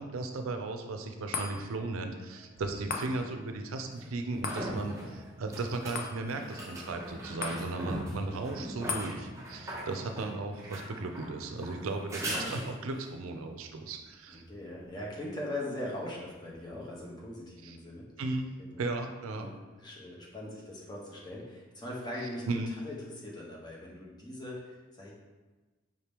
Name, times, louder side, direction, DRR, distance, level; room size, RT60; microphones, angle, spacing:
voice 1, 0.0-14.4 17.6-17.8 18.2-18.5 18.8-19.5 22.5-22.7, right 3 dB, 85° right, 5 dB, 0.5 m, -36 dB
sound 1, 1.3-13.9 14.4-14.5, left 4 dB, 45° left, 0.4 m, -44 dB
sound 2, 2.6-2.7 4.0-13.1 16.5-16.6, right 1 dB, 15° right, 0.7 m, -40 dB
voice 2, 14.3-18.1 18.6-18.7 19.3-25.1, left 1 dB, 20° left, -4 dB, 0.8 m, -41 dB
5.2 x 2.9 x 3.4 m, 1.3 s
head